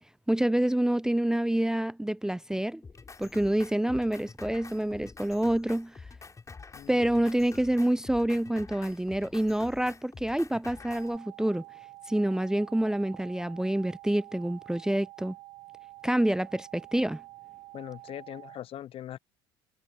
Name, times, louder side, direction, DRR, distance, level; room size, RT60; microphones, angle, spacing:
voice 1, 0.3-2.8 3.2-5.9 6.9-11.6 12.1-15.4 16.0-17.2, right 1 dB, 5° right, 0.4 m, -27 dB
Drum kit, 2.8-11.2, left 4 dB, 25° left, 7.3 m, -47 dB
voice 2, 6.7-7.1 17.7-19.2, left 11 dB, 50° left, 0.8 m, -41 dB
sound 1, 10.8-18.6, right 21 dB, 65° right, 1.3 m, -49 dB
hypercardioid pair, 65°, 13 cm